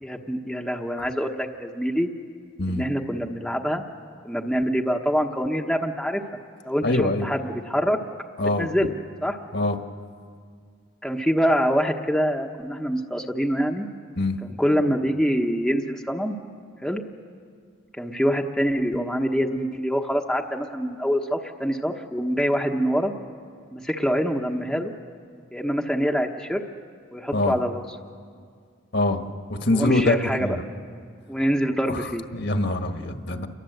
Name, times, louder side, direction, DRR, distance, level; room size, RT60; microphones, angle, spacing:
voice 1, 0.0-2.1 2.7-3.8 4.2-6.2 6.6-8.0 8.6-8.9 9.2-9.4 11.0-13.9 14.4-16.4 16.8-17.0 18.0-23.1 23.7-24.9 25.5-26.6 27.1-27.9 29.7-30.6 31.3-32.2, equal, ahead, 1 dB, 1.0 m, -25 dB
voice 2, 6.8-7.3 8.4-8.7 9.5-9.8 14.2-14.4 27.3-27.5 28.9-29.2 29.5-30.6 31.9-32.0 32.3-33.5, left 2 dB, 55° left, 6 dB, 1.5 m, -24 dB
29.0 x 21.5 x 7.9 m, 2.1 s
head